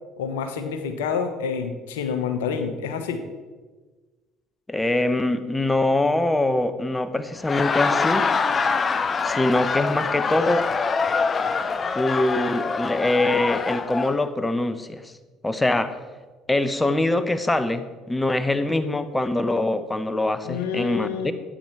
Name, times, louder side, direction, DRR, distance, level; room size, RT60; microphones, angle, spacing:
voice 1, 0.2-3.2 20.4-21.3, left 6 dB, 80° left, 8 dB, 1.1 m, -28 dB
voice 2, 4.7-8.3 9.2-10.7 12.0-15.1 15.4-15.9 16.5-21.3, left 2 dB, 15° left, 11 dB, 0.9 m, -23 dB
Laughter, 7.3-14.2, left 5 dB, 35° left, 0.7 m, -24 dB
13.0 x 9.2 x 4.6 m, 1.3 s
hypercardioid pair, 60°, 0 cm